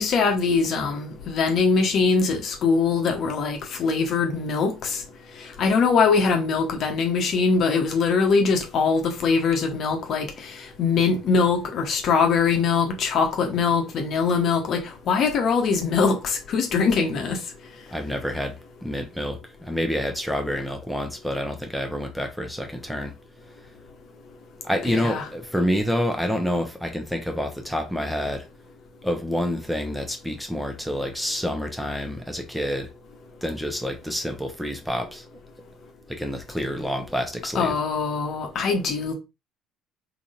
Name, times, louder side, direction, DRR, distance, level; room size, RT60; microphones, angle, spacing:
voice 1, 0.0-5.0 5.6-17.4 24.8-25.3 37.5-39.1, left 5 dB, 50° left, 0.9 m, -22 dB
voice 2, 17.9-23.1 24.6-28.5 29.0-32.9 33.4-35.2 36.1-37.7, equal, ahead, 0.8 m, -28 dB
3.8 x 2.9 x 2.5 m
figure-of-eight pair, 55°, 0 cm